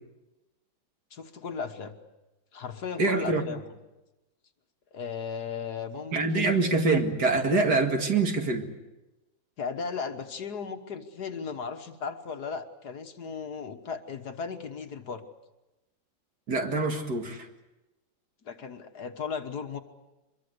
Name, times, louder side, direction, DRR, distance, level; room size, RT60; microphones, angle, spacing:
voice 1, 1.1-1.9 2.5-3.6 4.9-6.6 9.6-15.2 18.5-19.8, left 5 dB, 60° left, 7 dB, 1.8 m, -36 dB
voice 2, 3.0-3.4 6.1-8.7 16.5-17.5, right 3 dB, 55° right, 4 dB, 2.6 m, -25 dB
24.0 x 22.5 x 8.1 m, 1.0 s
omnidirectional pair, 2.1 m